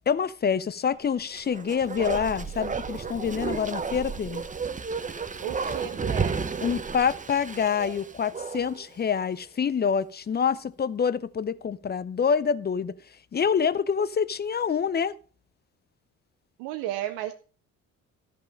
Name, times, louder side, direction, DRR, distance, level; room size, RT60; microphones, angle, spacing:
voice 1, 0.1-4.4 6.6-12.9 13.3-15.2, left 6 dB, 25° left, 0.6 m, -26 dB
Bark, 1.3-8.9 9.2-9.3, right 5 dB, 20° right, 0.8 m, -32 dB
voice 2, 5.4-6.4 16.6-17.3, right 12 dB, 70° right, 0.7 m, -33 dB
13.0 x 5.6 x 5.1 m
hypercardioid pair, 45°, 40 cm